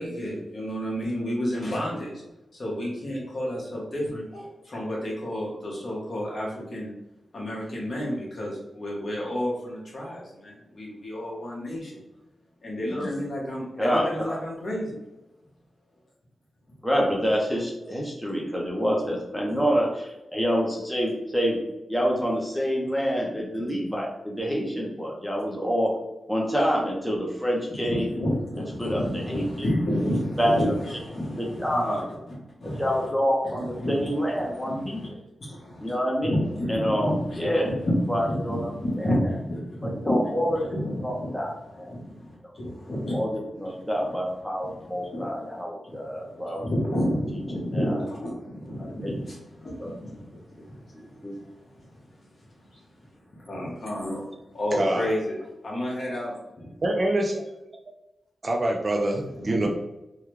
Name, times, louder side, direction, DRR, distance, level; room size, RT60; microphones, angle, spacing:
voice 1, 0.0-2.2 2.5-6.9 7.3-12.0 12.6-15.0 19.5-19.6 27.7-32.3 32.6-33.0 33.4-35.1 35.4-35.9 36.2-41.3 41.9-43.2 43.7-43.8 45.1-45.2 45.9-55.4 55.6-56.7 59.2-59.7, equal, 50° left, -4 dB, 1.3 m, -31 dB
voice 2, 13.8-14.4 16.8-21.6 21.9-26.0 26.3-28.1 28.8-29.7 30.0-30.1 30.4-30.6 31.4-32.0 32.6-35.0 35.8-36.3 36.7-37.7 38.1-38.7 39.0-39.2 40.0-40.7 41.0-41.9 43.1-46.7 47.5-48.0 49.0-49.1 49.8-49.9 50.9-51.3, equal, 5° left, -2 dB, 0.7 m, -27 dB
voice 3, 54.8-55.1 56.8-57.5 58.4-59.7, right 1 dB, 35° right, 2 dB, 0.5 m, -25 dB
3.5 x 2.2 x 3.1 m, 0.97 s
wide cardioid pair, 110°, 0 cm